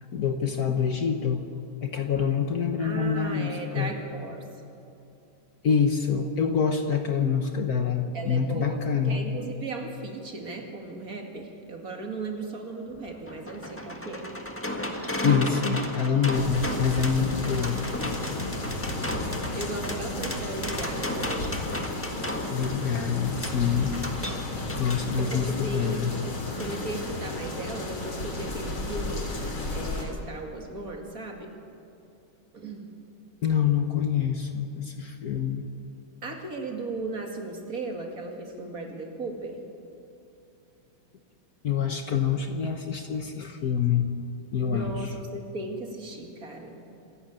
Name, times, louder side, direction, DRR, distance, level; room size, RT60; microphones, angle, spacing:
voice 1, 0.1-1.5 1.8-4.0 5.6-9.2 15.2-17.8 18.3-18.4 22.5-24.0 24.8-26.1 33.4-35.6 41.6-44.1 44.5-45.1, left 7 dB, 55° left, 6 dB, 1.3 m, -26 dB
voice 2, 2.8-4.4 7.3-7.4 8.1-14.3 19.6-21.6 25.2-26.1 26.6-29.3 29.7-31.5 32.5-32.9 36.2-39.6 44.6-46.8, right 2 dB, 45° right, 3 dB, 2.5 m, -36 dB
sound 1, 12.9-25.4 26.6-26.7 27.1-27.2, left 1 dB, 5° left, 1.4 m, -34 dB
sound 2, 16.3-30.0, left 2 dB, 85° left, 3.9 m, -33 dB
26.5 x 12.0 x 8.8 m, 2.8 s
omnidirectional pair, 2.2 m